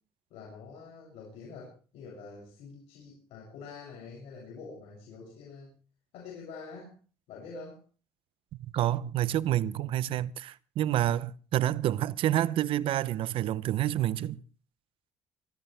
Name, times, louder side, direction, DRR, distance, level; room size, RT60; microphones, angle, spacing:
voice 1, 0.3-5.7 6.1-6.9 7.3-7.8, left 4 dB, 80° left, 7.5 m, -46 dB
voice 2, 8.7-14.4, right 12 dB, 70° right, 0.8 m, -28 dB
25.0 x 13.5 x 3.5 m
cardioid pair, 95°, 10 cm